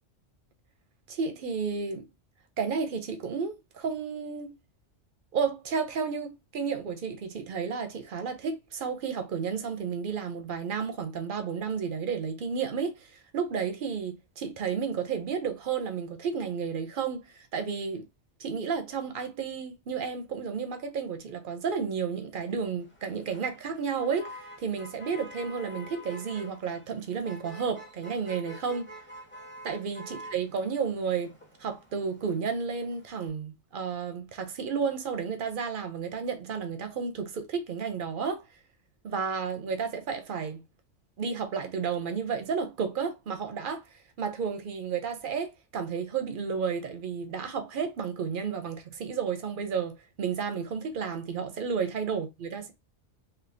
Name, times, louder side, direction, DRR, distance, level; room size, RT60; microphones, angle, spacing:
voice 1, 1.1-2.1 2.6-4.6 5.3-18.0 18.4-28.9 29.6-31.3 31.6-38.4 39.0-40.6 41.2-52.7, right 6 dB, 60° right, 0.6 m, -32 dB
Motor vehicle (road), 22.8-33.3, equal, 10° left, 0.7 m, -48 dB
3.2 x 2.6 x 2.5 m
omnidirectional pair, 1.2 m